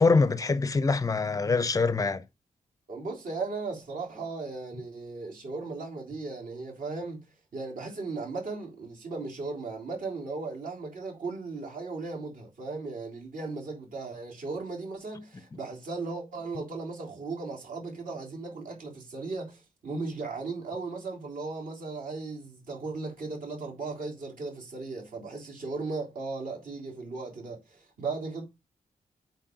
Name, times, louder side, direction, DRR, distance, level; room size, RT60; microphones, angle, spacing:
voice 1, 0.0-2.2, left 4 dB, 20° left, 0.5 m, -24 dB
voice 2, 2.9-7.2 7.5-28.4, right 3 dB, 60° right, 3.1 m, -36 dB
7.8 x 4.3 x 4.5 m
wide cardioid pair, 170°, 15 cm